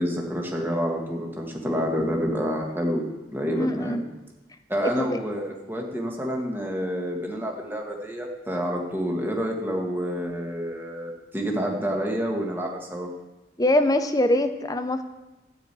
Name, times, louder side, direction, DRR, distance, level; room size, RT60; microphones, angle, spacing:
voice 1, 0.0-4.0 4.7-13.1, equal, 10° right, 0 dB, 1.8 m, -28 dB
voice 2, 3.5-4.0 5.0-5.2 13.6-15.0, left 1 dB, 20° left, 8 dB, 0.7 m, -23 dB
13.0 x 5.1 x 8.4 m, 1.0 s
head